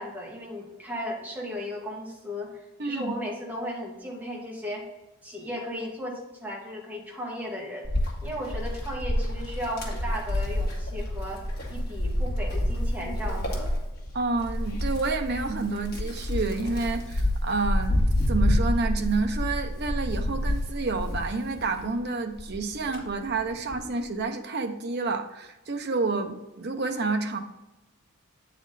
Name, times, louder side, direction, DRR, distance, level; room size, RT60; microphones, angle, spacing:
voice 1, 0.0-4.8 5.2-7.9 8.2-11.4 11.7-13.7, equal, 10° right, -3 dB, 1.7 m, -35 dB
voice 2, 2.8-3.1 14.1-27.4, right 3 dB, 50° right, 5 dB, 0.7 m, -29 dB
Wind, 7.8-21.9 22.4-23.9, left 1 dB, 45° left, 1.6 m, -28 dB
8.3 x 4.3 x 3.9 m, 1.0 s
head